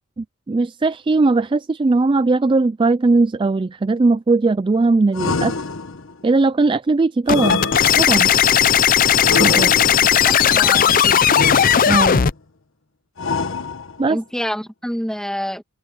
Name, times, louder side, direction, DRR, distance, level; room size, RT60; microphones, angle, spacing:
voice 1, 0.2-5.5 6.2-7.6 8.0-8.3 9.4-9.8 11.9-12.2 14.0-14.2, right 3 dB, 25° right, 0.3 m, -18 dB
sound 1, 5.1-6.2 7.3-8.3 9.2-10.2 11.3-12.2 13.2-14.1, left 3 dB, 70° left, 1.4 m, -25 dB
sound 2, 7.3-12.3, left 8 dB, 40° left, 0.5 m, -15 dB
voice 2, 10.2-11.2 14.1-15.6, equal, 5° left, 2.1 m, -27 dB
head